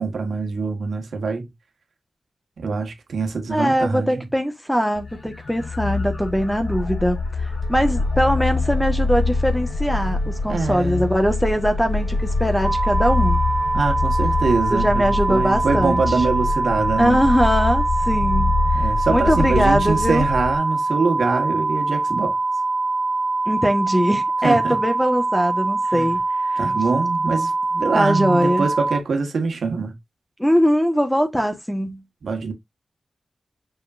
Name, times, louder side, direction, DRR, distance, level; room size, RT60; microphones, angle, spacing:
voice 1, 0.0-1.5 2.6-4.3 10.5-11.0 13.7-17.2 18.7-22.4 24.4-24.8 25.9-26.1 26.6-29.9 32.2-32.5, right 4 dB, 90° right, 1.5 m, -24 dB
voice 2, 3.5-13.4 14.7-16.2 17.0-20.3 23.5-26.2 26.5-26.6 27.9-28.7 30.4-32.0, equal, 5° left, 1.5 m, -21 dB
sound 1, 4.9-20.5, left 3 dB, 60° left, 3.3 m, -24 dB
sound 2, 12.6-29.0, right 3 dB, 30° right, 0.4 m, -23 dB
6.4 x 5.7 x 2.6 m
wide cardioid pair, 100°, 0 cm